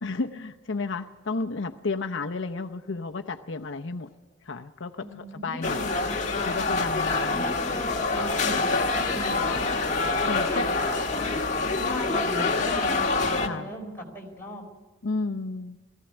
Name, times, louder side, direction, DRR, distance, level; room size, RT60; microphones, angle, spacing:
voice 1, 0.0-4.1 4.5-5.8 6.4-7.4 8.5-8.7 10.3-10.8 13.5-13.7 15.0-15.8, left 3 dB, 75° left, 5 dB, 0.8 m, -32 dB
voice 2, 5.0-6.1 7.3-9.6 10.3-11.3 11.6-14.6, equal, 10° left, -1 dB, 4.4 m, -39 dB
sound 1, 5.6-13.5, left 3 dB, 40° left, 1.5 m, -26 dB
19.5 x 15.5 x 9.8 m, 1.2 s
head